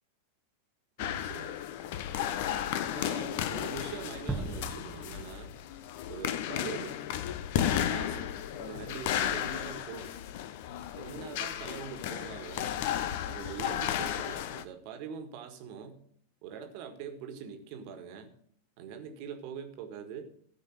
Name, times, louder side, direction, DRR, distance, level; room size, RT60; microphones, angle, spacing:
sound 1, 1.0-14.6, left 10 dB, 50° left, 0.6 m, -34 dB
voice 1, 1.0-1.5 2.9-5.5 6.1-6.9 7.6-8.3 8.6-10.1 10.9-12.8 13.3-16.0 16.4-18.3 18.8-20.2, right 7 dB, 45° right, 6 dB, 1.6 m, -43 dB
sound 2, 4.3-6.7, right 2 dB, 5° right, 0.9 m, -39 dB
13.5 x 5.0 x 6.7 m, 0.63 s
figure-of-eight pair, 90°, 0 cm